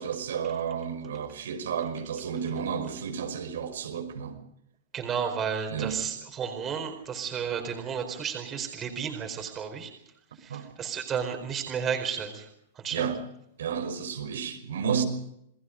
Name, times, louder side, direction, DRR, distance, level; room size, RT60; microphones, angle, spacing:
voice 1, 0.0-4.4 5.7-6.0 10.5-10.7 12.9-13.2 13.6-15.0, right 7 dB, 90° right, 5.5 m, -31 dB
voice 2, 4.9-9.9 10.4-12.5 12.7-13.1, right 7 dB, 20° right, 4.5 m, -32 dB
28.5 x 20.5 x 5.3 m
supercardioid pair, 160°, 0 cm